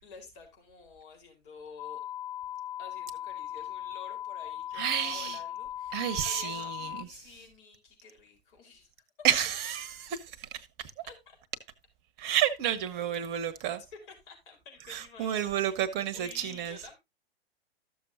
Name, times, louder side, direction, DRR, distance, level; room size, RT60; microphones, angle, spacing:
voice 1, 0.0-2.0 2.8-8.9 11.0-11.4 13.9-15.8 16.1-17.0, left 4 dB, 55° left, 4.1 m, -50 dB
sound 1, 1.8-7.0, left 11 dB, 15° left, 0.4 m, -38 dB
voice 2, 4.7-5.4 5.9-7.1 9.2-10.9 12.2-13.8 14.9-16.8, right 9 dB, 35° right, 1.1 m, -30 dB
13.5 x 7.0 x 2.6 m
hypercardioid pair, 115°, 31 cm